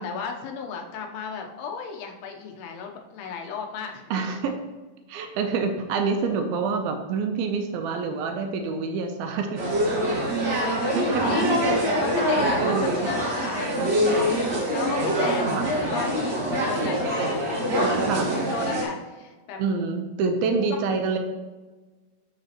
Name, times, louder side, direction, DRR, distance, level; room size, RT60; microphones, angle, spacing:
voice 1, 0.0-4.1 10.1-11.5 12.0-14.3 14.7-17.0 17.8-19.6 20.5-20.7, left 6 dB, 85° left, 3 dB, 2.8 m, -35 dB
voice 2, 4.1-4.5 5.1-9.6 10.6-11.3 11.9-12.1 12.6-13.1 13.8-13.9 15.5-15.6 18.1-18.3 19.6-21.2, right 5 dB, 80° right, 4 dB, 2.4 m, -27 dB
sound 1, 9.6-18.8, equal, 65° right, 1.0 m, -24 dB
11.5 x 4.0 x 2.9 m, 1.2 s
omnidirectional pair, 4.5 m